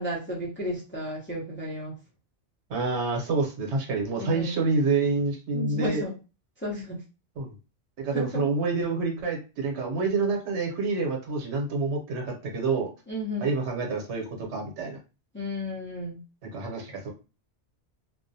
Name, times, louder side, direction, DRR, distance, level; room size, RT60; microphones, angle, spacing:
voice 1, 0.0-1.9 4.2-4.6 5.5-6.1 6.6-7.0 8.1-8.3 13.1-13.6 15.3-16.2, left 1 dB, 15° left, -4 dB, 0.5 m, -33 dB
voice 2, 2.7-6.0 7.4-7.5 8.0-12.9 13.4-15.0 16.4-17.1, right 3 dB, 75° right, 1 dB, 1.0 m, -27 dB
2.4 x 2.1 x 2.6 m, 0.31 s
omnidirectional pair, 1.2 m